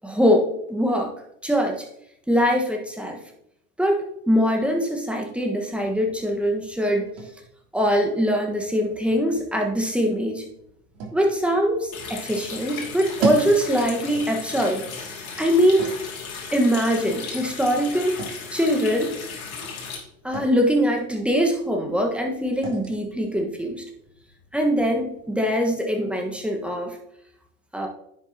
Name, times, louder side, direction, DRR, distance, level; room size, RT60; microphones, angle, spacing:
voice 1, 0.0-1.1 1.4-1.9 2.3-3.2 3.8-7.1 7.7-10.4 11.1-14.8 15.4-15.9 16.5-18.2 18.5-19.1 20.2-23.8 24.5-27.0 27.7-27.9, equal, 5° right, 2 dB, 1.4 m, -22 dB
Gas Door, 5.7-25.3, right 4 dB, 50° right, 3.1 m, -39 dB
Water tap faucet, 11.9-20.0, left 5 dB, 75° left, 2.7 m, -36 dB
9.8 x 7.3 x 2.9 m, 0.77 s
hypercardioid pair, 95°, 43 cm